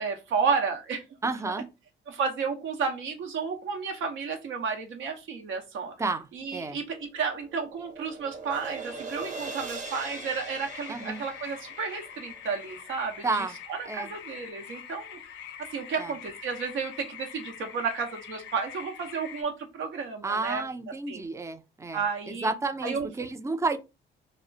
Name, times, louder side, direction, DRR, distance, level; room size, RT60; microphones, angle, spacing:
voice 1, 0.0-1.0 2.1-5.9 6.3-15.2 15.7-20.6 21.1-21.2 21.9-22.6 22.8-23.1, right 5 dB, 85° right, 0.8 m, -32 dB
voice 2, 1.2-1.7 6.0-6.3 6.5-6.8 10.9-11.2 13.2-13.5 13.9-14.1 16.0-16.1 20.2-22.0 22.3-23.8, right 3 dB, 15° right, 0.4 m, -31 dB
sound 1, 6.9-13.2, right 4 dB, 40° right, 0.8 m, -41 dB
sound 2, 9.8-19.4, left 9 dB, 70° left, 0.4 m, -44 dB
2.3 x 2.1 x 3.8 m
cardioid pair, 90°, 20 cm